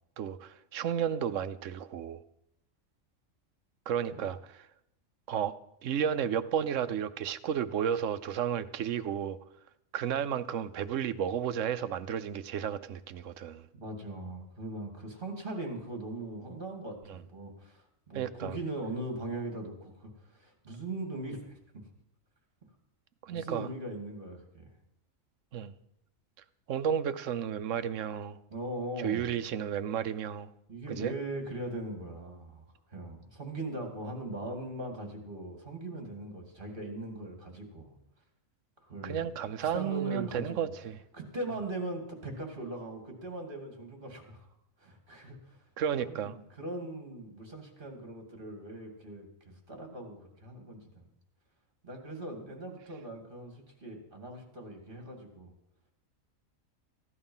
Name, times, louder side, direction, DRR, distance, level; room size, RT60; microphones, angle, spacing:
voice 1, 0.2-2.2 3.9-4.4 5.3-5.5 5.8-9.4 9.9-13.6 18.1-18.5 23.2-23.7 25.5-25.7 26.7-28.4 29.0-30.5 31.0-31.1 39.0-41.0 45.8-46.3, right 8 dB, 70° right, 13 dB, 1.0 m, -32 dB
voice 2, 13.7-21.6 23.3-24.7 28.5-29.3 30.7-38.0 38.8-39.3 39.6-40.7 41.1-44.5 44.8-45.6 45.9-51.1 51.8-55.5, right 1 dB, 40° right, 2 dB, 2.8 m, -40 dB
15.5 x 11.0 x 5.6 m, 0.80 s
omnidirectional pair, 1.4 m